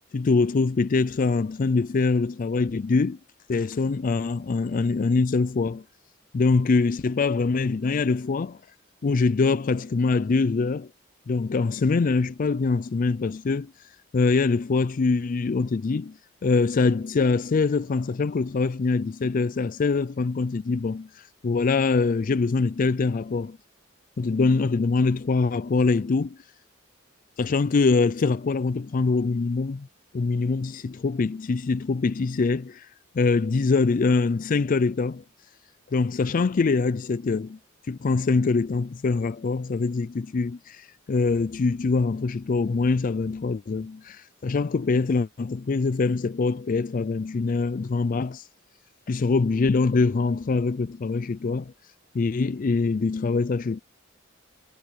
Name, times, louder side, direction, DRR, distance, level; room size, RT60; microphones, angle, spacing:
voice 1, 0.1-3.2 3.5-5.8 6.3-8.6 9.0-10.9 11.3-13.7 14.1-23.6 24.2-26.4 27.4-29.9 30.1-32.9 33.1-35.2 35.9-37.6 37.9-48.4 49.1-51.7 52.1-53.8, left 4 dB, 40° left, 0.4 m, -24 dB
head